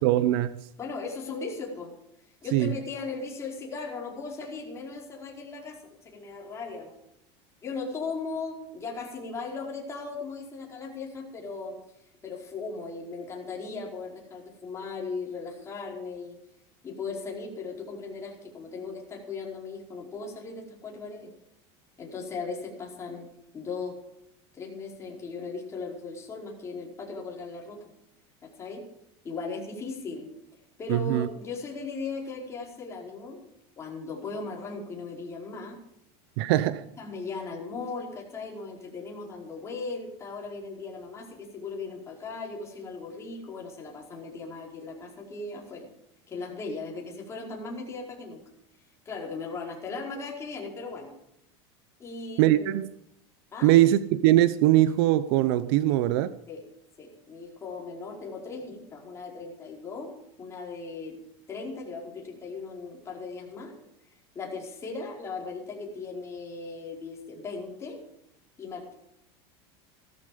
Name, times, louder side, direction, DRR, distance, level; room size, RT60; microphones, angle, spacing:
voice 1, 0.0-0.5 2.5-2.7 30.9-31.3 36.4-36.8 52.4-52.9 53.6-56.3, right 14 dB, 65° right, 0.8 m, -21 dB
voice 2, 0.8-1.9 2.4-5.8 6.0-6.9 7.6-11.8 12.2-16.4 16.8-21.3 22.0-23.3 23.5-24.0 24.5-27.9 28.4-28.9 29.2-30.3 30.8-33.4 33.8-35.8 37.0-45.9 46.3-48.4 49.0-51.1 52.0-52.8 53.5-53.8 56.5-56.6 57.0-61.2 61.5-63.7 64.3-68.0 68.6-68.9, left 4 dB, 20° left, 4.8 m, -37 dB
16.5 x 13.5 x 5.2 m
supercardioid pair, 155°, 13 cm